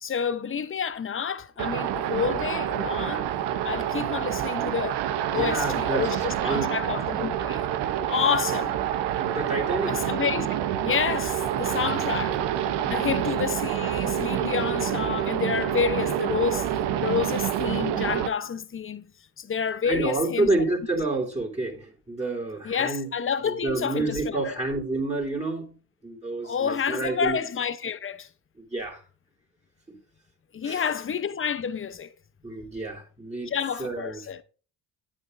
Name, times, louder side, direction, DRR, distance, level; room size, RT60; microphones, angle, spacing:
voice 1, 0.0-3.3 3.6-5.0 5.3-7.6 8.0-8.8 9.9-16.7 17.0-19.1 19.4-20.5 22.6-24.6 26.4-28.3 30.5-32.1 33.5-34.4, left 6 dB, 30° left, 0.8 m, -29 dB
sound 1, 1.6-18.3, right 10 dB, 70° right, 0.9 m, -27 dB
voice 2, 5.2-6.7 9.2-10.0 11.9-12.2 12.8-13.2 19.8-23.1 23.4-27.4 28.6-29.0 29.9-30.0 30.6-30.9 32.4-33.5 33.8-34.2, right 2 dB, 15° right, 3.0 m, -29 dB
9.3 x 8.8 x 2.6 m
supercardioid pair, 60°, 43 cm